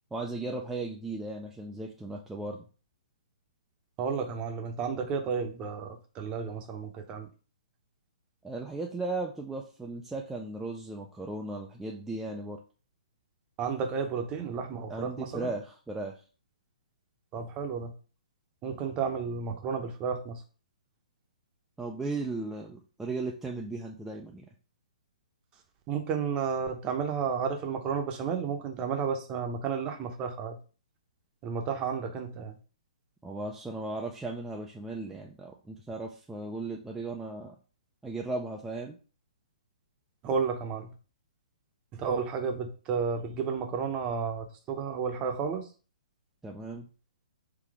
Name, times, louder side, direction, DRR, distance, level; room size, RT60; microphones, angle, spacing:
voice 1, 0.1-2.7 8.4-12.6 14.9-16.2 21.8-24.5 33.2-37.6 38.0-39.0 46.4-46.9, right 2 dB, 5° right, -1 dB, 0.4 m, -36 dB
voice 2, 4.0-7.3 13.6-15.5 17.3-17.9 18.6-20.4 25.9-30.6 31.4-32.6 40.2-40.9 41.9-45.7, right 6 dB, 25° right, 5 dB, 0.7 m, -32 dB
4.0 x 2.8 x 4.7 m, 0.37 s
hypercardioid pair, 145°, 4 cm